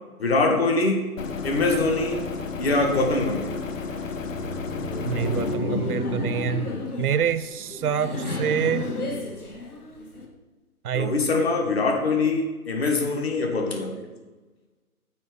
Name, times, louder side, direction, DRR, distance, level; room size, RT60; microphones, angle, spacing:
voice 1, 0.2-1.1 1.4-2.2 2.6-3.6 10.9-14.1, left 3 dB, 45° left, 3 dB, 1.3 m, -23 dB
sound 1, 1.2-5.6, left 5 dB, 60° left, 0.8 m, -32 dB
Laughter, 4.0-10.2, left 2 dB, 80° left, 1.5 m, -31 dB
voice 2, 5.1-6.7 7.0-8.9 10.8-11.5, right 8 dB, 75° right, 15 dB, 0.5 m, -27 dB
7.2 x 4.6 x 4.8 m, 1.2 s
figure-of-eight pair, 155°, 44 cm